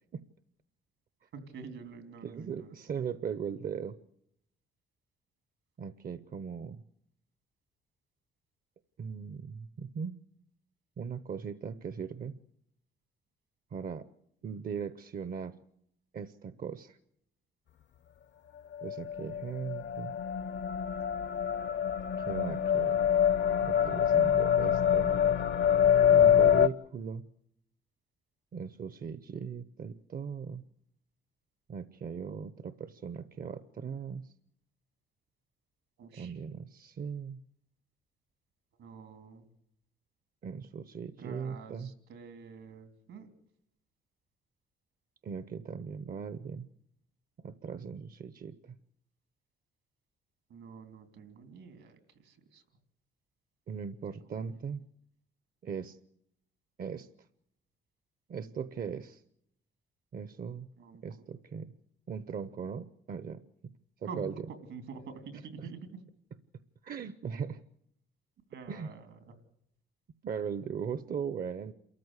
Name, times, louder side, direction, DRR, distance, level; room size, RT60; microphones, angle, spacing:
voice 1, 1.3-2.8 36.0-36.4 38.8-39.5 41.2-43.3 50.5-52.6 54.2-54.4 60.8-61.0 64.0-66.0 68.5-69.3 71.1-71.2, right 5 dB, 80° right, 8 dB, 3.4 m, -47 dB
voice 2, 2.2-4.0 5.8-6.8 9.0-10.2 11.0-12.4 13.7-14.1 14.4-15.5 16.1-17.0 18.8-20.2 22.2-23.0 23.6-25.1 26.1-27.3 28.5-30.6 31.7-34.3 36.2-37.4 40.4-41.9 45.2-46.7 47.4-48.8 53.7-54.9 55.6-56.0 56.8-57.1 58.3-59.2 60.1-60.7 61.0-61.7 62.1-63.7 64.2-64.3 65.6-65.7 66.8-67.6 68.7-68.9 70.2-71.7, right 6 dB, 45° right, 14 dB, 0.8 m, -39 dB
sound 1, 18.7-26.7, left 9 dB, 65° left, 0.8 m, -25 dB
28.0 x 14.0 x 8.1 m, 0.75 s
cardioid pair, 90°, 20 cm